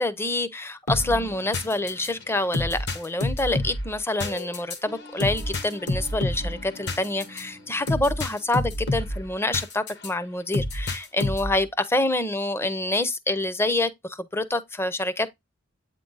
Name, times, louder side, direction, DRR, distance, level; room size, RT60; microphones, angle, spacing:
voice 1, 0.0-15.4, left 2 dB, 10° left, 0.6 m, -27 dB
sound 1, 0.9-10.1 10.5-11.6, left 1 dB, 60° left, 1.3 m, -30 dB
8.4 x 3.7 x 3.9 m
head